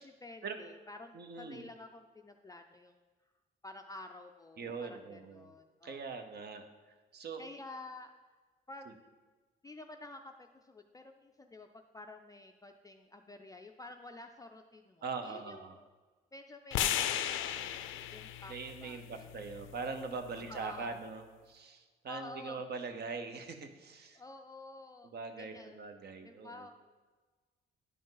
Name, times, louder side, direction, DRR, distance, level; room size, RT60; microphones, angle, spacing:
voice 1, 0.0-3.1 3.6-6.0 7.4-8.1 8.7-8.9 9.6-15.9 16.3-18.5 18.8-19.7 20.4-21.0 22.1-22.6 24.1-25.8 26.2-26.7, left 2 dB, 20° left, 5 dB, 0.4 m, -50 dB
voice 2, 1.1-1.7 4.6-5.5 5.8-6.6 7.1-7.4 15.0-15.8 18.5-24.2 25.0-26.7, right 4 dB, 55° right, 7 dB, 0.9 m, -42 dB
sound 1, 16.7-20.9, left 11 dB, 85° left, 0.5 m, -37 dB
11.0 x 5.1 x 3.9 m, 1.3 s
cardioid pair, 90°, 20 cm